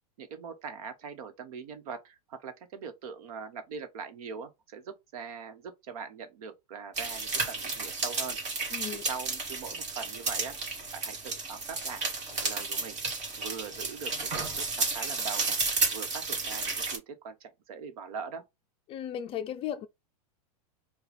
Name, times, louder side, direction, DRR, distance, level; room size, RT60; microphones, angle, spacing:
voice 1, 0.2-10.6 10.9-12.0 12.3-13.0 13.4-15.6 15.9-18.4, right 6 dB, 70° right, 1.2 m, -42 dB
sound 1, 7.0-17.0, right 4 dB, 35° right, 1.9 m, -32 dB
voice 2, 8.7-9.0 18.9-19.9, left 10 dB, 30° left, 0.4 m, -35 dB
4.7 x 2.4 x 3.4 m
hypercardioid pair, 120°, 20 cm